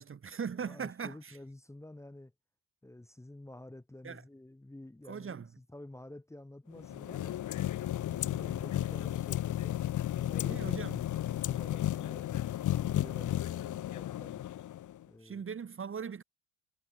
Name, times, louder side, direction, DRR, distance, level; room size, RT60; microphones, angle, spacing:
voice 1, 0.0-1.4 4.0-4.2 5.1-5.5 10.5-11.0 15.2-16.2, right 6 dB, 25° right, 2.0 m, -40 dB
voice 2, 0.6-2.3 2.8-7.4 8.0-12.3 12.7-14.4 15.1-15.5, left 1 dB, 5° left, 1.9 m, -50 dB
sound 1, 6.8-15.0, left 12 dB, 40° left, 0.7 m, -34 dB
cardioid pair, 170°, 47 cm